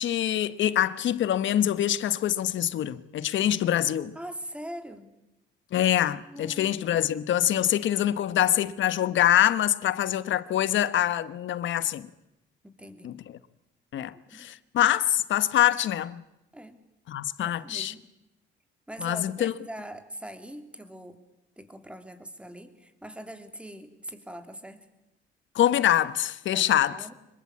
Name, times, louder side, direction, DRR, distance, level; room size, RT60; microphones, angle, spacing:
voice 1, 0.0-4.1 5.7-12.1 13.0-13.2 13.9-16.2 17.1-17.9 19.0-19.5 25.5-27.0, left 11 dB, 70° left, 1.2 m, -25 dB
voice 2, 4.1-5.1 6.2-7.2 7.6-8.0 12.7-13.2 14.0-14.5 16.5-16.8 17.4-18.0 18.9-21.2 21.6-24.9 26.5-27.1, right 1 dB, 5° right, 3.4 m, -42 dB
25.0 x 22.0 x 8.6 m
cardioid pair, 90°, 20 cm